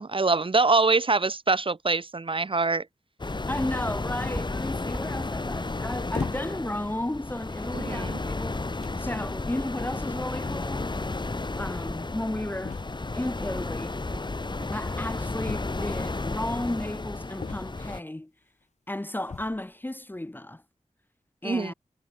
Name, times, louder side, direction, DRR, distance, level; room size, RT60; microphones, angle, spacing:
voice 1, 0.0-2.8 7.7-8.2 21.4-21.7, right 3 dB, 40° right, 1.4 m, -24 dB
sound 1, 3.2-18.0, left 3 dB, 35° left, 3.6 m, -33 dB
voice 2, 3.5-8.6 9.0-10.9 11.6-12.8 13.1-14.0 14.7-18.3 18.9-20.6 21.4-21.7, left 1 dB, 15° left, 1.2 m, -33 dB
sound 2, 4.3-4.5 4.9-5.3 5.6-5.7 6.2-7.5 7.8-8.7 9.0-10.0 10.8-12.4 13.2-13.4 14.0-14.9, right 1 dB, 10° right, 3.0 m, -43 dB
sound 3, 6.1-6.7 7.5-7.7 8.5-8.6 8.8-9.1 10.4-10.5 10.7-10.8 11.0-11.1 12.6-13.2 15.4-16.1 17.4-18.0 19.2-19.7, left 4 dB, 60° left, 3.9 m, -37 dB
wide cardioid pair, 85°, 13 cm